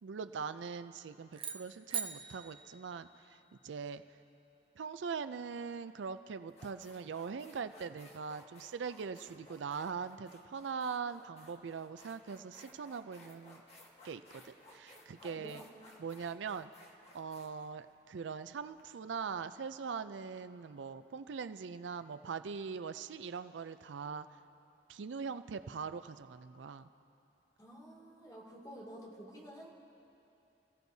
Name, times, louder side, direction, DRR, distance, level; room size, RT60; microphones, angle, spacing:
voice 1, 0.0-4.0 4.8-13.6 14.0-15.6 16.0-16.7 17.1-24.3 24.9-26.9, right 5 dB, 85° right, 12 dB, 0.4 m, -42 dB
sound 1, 1.3-3.7, right 7 dB, 30° right, 0.6 m, -42 dB
sound 2, 5.9-6.0 6.5-18.8, left 1 dB, 35° left, 1.5 m, -59 dB
voice 2, 15.2-15.7 27.6-29.7, equal, 20° left, -3 dB, 2.6 m, -50 dB
28.5 x 15.5 x 2.7 m, 2.8 s
head